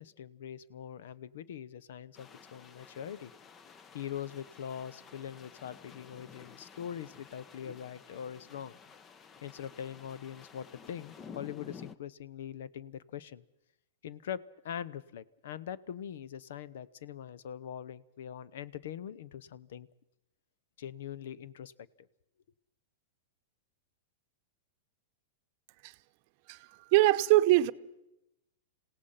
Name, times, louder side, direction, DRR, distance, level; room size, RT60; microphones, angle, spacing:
voice 1, 0.0-3.3 3.9-8.8 9.4-13.4 14.0-19.9 20.8-21.7, left 9 dB, 70° left, 0.8 m, -42 dB
sound 1, 2.1-12.0, left 6 dB, 25° left, 0.9 m, -52 dB
voice 2, 26.5-27.7, right 16 dB, 50° right, 0.8 m, -24 dB
27.0 x 17.0 x 5.7 m
hypercardioid pair, 115°, 0 cm